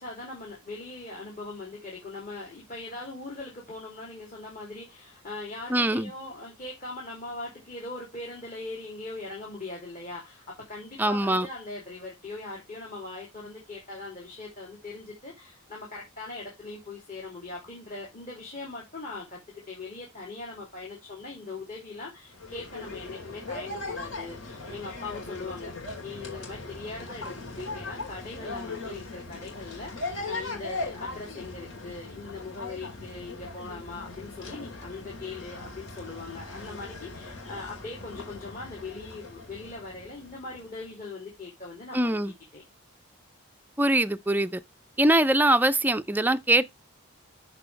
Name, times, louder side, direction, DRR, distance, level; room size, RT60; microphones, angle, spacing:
voice 1, 0.0-25.7 26.0-42.2 42.5-42.6, left 3 dB, 35° left, 3.2 m, -40 dB
voice 2, 5.7-6.1 11.0-11.5 41.9-42.3 43.8-44.6 45.0-46.6, right 1 dB, 10° right, 0.5 m, -23 dB
sound 1, 22.3-40.8, left 3 dB, 65° left, 4.3 m, -39 dB
14.0 x 4.7 x 3.4 m
head